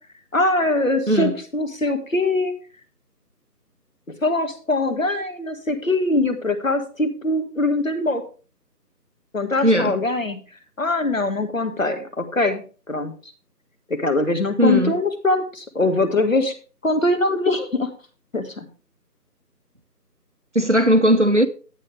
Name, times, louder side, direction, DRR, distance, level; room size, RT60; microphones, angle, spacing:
voice 1, 0.3-2.5 4.1-8.2 9.3-10.4 10.8-13.1 13.9-16.5 16.8-17.9 18.3-18.7, left 2 dB, 50° left, 1.9 m, -22 dB
voice 2, 9.6-10.0 14.6-14.9 20.5-21.5, equal, 45° right, 0.7 m, -17 dB
12.5 x 8.8 x 3.4 m
figure-of-eight pair, 180°, 49 cm